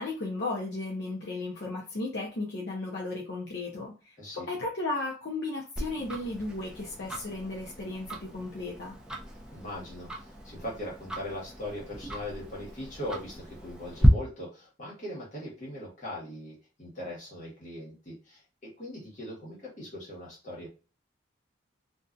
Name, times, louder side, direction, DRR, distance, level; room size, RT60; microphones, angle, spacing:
voice 1, 0.0-9.0, left 2 dB, 65° left, -2 dB, 0.6 m, -35 dB
Tick-tock, 5.8-14.1, equal, 5° right, 0.3 m, -36 dB
voice 2, 9.5-20.7, left 1 dB, 40° left, -5 dB, 1.3 m, -40 dB
2.6 x 2.3 x 2.4 m, 0.32 s
head